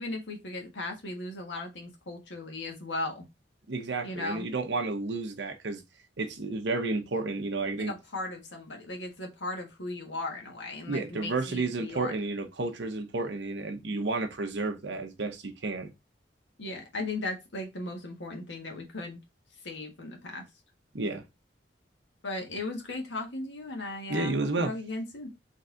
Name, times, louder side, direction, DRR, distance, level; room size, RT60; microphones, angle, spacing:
voice 1, 0.0-3.2 4.0-4.5 7.8-12.1 16.6-19.2 19.6-20.4 22.2-24.3 24.6-25.3, left 2 dB, 75° left, 1.6 m, -37 dB
voice 2, 3.7-5.8 6.2-7.9 10.9-15.9 20.9-21.2 24.1-24.7, right 3 dB, 70° right, 0.9 m, -31 dB
4.0 x 3.3 x 3.8 m
head